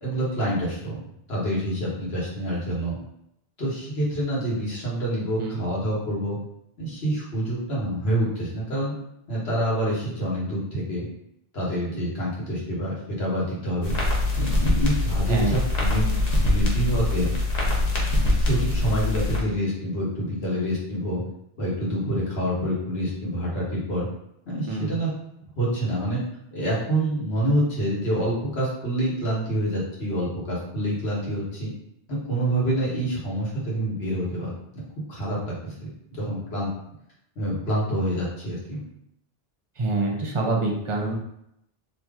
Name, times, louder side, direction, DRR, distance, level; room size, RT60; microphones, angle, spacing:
voice 1, 0.0-0.9 1.3-3.0 3.6-6.4 6.8-8.9 9.3-11.1 11.5-13.9 14.4-16.1 16.4-17.3 18.4-21.2 21.6-24.1 24.5-25.1 25.6-26.2 26.5-31.7 32.1-34.5 35.1-36.7 37.3-38.8, right 1 dB, 85° left, -6 dB, 1.5 m, -27 dB
sound 1, 13.8-19.4, left 2 dB, 45° left, 0.8 m, -23 dB
voice 2, 15.3-15.6 24.7-24.9 39.8-41.1, right 2 dB, 35° right, -1 dB, 0.6 m, -26 dB
2.9 x 2.5 x 3.5 m, 0.78 s
omnidirectional pair, 1.0 m